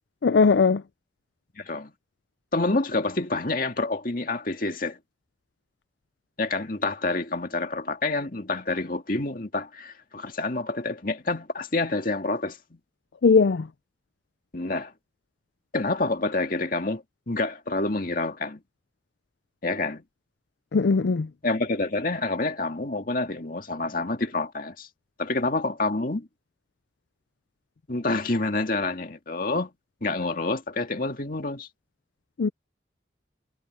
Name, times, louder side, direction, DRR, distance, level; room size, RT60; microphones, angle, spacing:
voice 1, 0.2-0.8 13.2-13.7 20.7-21.3 32.4-32.5, left 4 dB, 65° left, 0.4 m, -19 dB
voice 2, 1.6-1.9 2.5-5.0 6.4-12.8 14.5-14.9 15.7-18.6 19.6-20.0 21.4-24.9 25.2-26.3 27.9-29.7 30.0-31.7, left 2 dB, 45° left, 2.1 m, -28 dB
head